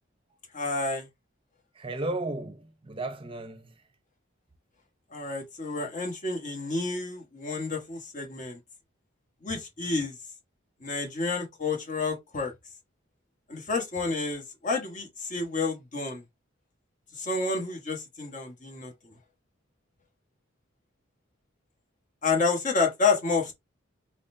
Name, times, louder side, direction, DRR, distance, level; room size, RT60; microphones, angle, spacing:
voice 1, 0.5-1.1 5.1-8.6 9.4-10.2 10.8-12.5 13.5-16.2 17.1-19.1 22.2-23.5, left 4 dB, 40° left, 1.3 m, -29 dB
voice 2, 1.7-3.8, right 2 dB, 25° right, 0.7 m, -34 dB
4.3 x 4.0 x 2.7 m
head